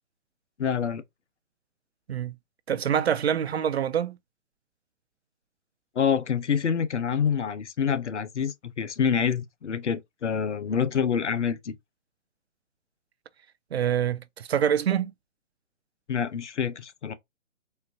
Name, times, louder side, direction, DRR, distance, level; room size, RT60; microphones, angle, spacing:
voice 1, 0.6-1.0 6.0-11.8 16.1-17.1, left 7 dB, 65° left, 0.7 m, -27 dB
voice 2, 2.7-4.2 13.7-15.1, right 9 dB, 55° right, 0.5 m, -25 dB
4.3 x 2.4 x 2.6 m
figure-of-eight pair, 135°, 38 cm